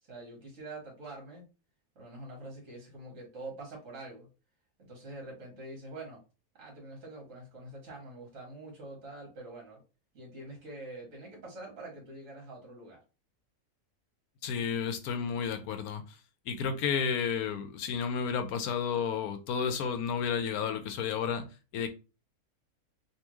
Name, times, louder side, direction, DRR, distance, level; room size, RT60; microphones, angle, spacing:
voice 1, 0.1-1.5 1.9-4.3 4.8-6.2 6.5-9.8 10.1-13.0, right 2 dB, 55° right, 1.5 m, -45 dB
voice 2, 14.4-16.2 16.5-21.5 21.7-21.9, left 6 dB, 75° left, 1.0 m, -32 dB
3.5 x 2.6 x 3.0 m
omnidirectional pair, 1.6 m